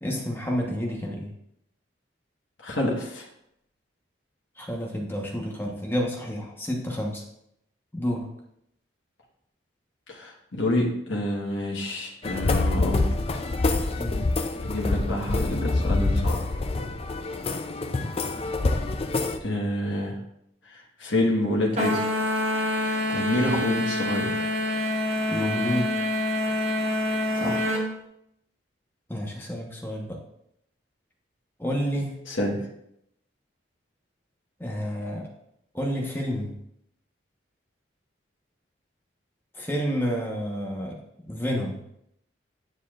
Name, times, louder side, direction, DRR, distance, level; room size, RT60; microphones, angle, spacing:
voice 1, 0.0-1.3 4.6-7.2 7.9-8.3 14.0-14.2 25.3-25.9 29.1-30.2 31.6-32.1 34.6-35.3 35.7-36.5 39.5-41.0 41.3-41.8, equal, 10° left, -1 dB, 1.1 m, -29 dB
voice 2, 2.6-3.3 10.1-13.2 14.6-16.4 19.4-20.2 20.6-22.0 22.8-24.5 27.3-27.8 32.2-32.6, left 1 dB, 80° left, -2 dB, 1.3 m, -28 dB
sound 1, 12.2-19.4, left 2 dB, 30° left, 0.4 m, -26 dB
sound 2, 21.8-27.9, left 1 dB, 35° right, 1.3 m, -26 dB
9.7 x 6.9 x 2.5 m, 0.77 s
head